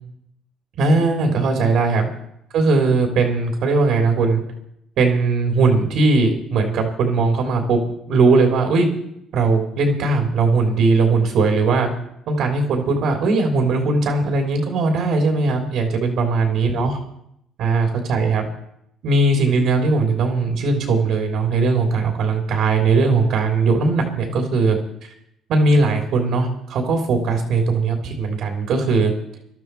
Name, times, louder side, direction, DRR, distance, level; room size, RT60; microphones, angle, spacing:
voice 1, 0.8-2.1 2.5-4.4 5.0-7.8 8.1-8.9 9.3-11.9 12.3-17.0 17.6-18.5 19.0-25.1 25.5-29.1, right 3 dB, 70° right, 3 dB, 3.2 m, -19 dB
21.0 x 12.5 x 4.6 m, 0.75 s
cardioid pair, 105°, 0 cm